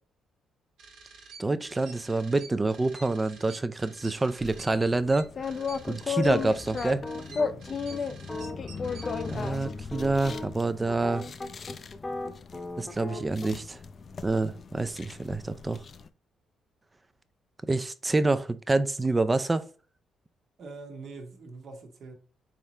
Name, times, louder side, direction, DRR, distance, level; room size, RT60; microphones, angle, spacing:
sound 1, 0.8-9.5, right 4 dB, 80° right, 1.3 m, -49 dB
voice 1, 1.4-5.3 5.9-7.0 9.3-11.2 12.8-13.8 14.2-15.8 17.7-19.7, right 2 dB, 20° right, 0.4 m, -27 dB
sound 2, 4.4-16.1, left 5 dB, 45° left, 0.4 m, -36 dB
sound 3, 6.1-13.5, left 2 dB, 20° left, 0.8 m, -38 dB
voice 2, 7.3-8.4 20.6-22.1, right 3 dB, 60° right, 1.1 m, -45 dB
4.3 x 3.6 x 3.1 m
cardioid pair, 90°, 0 cm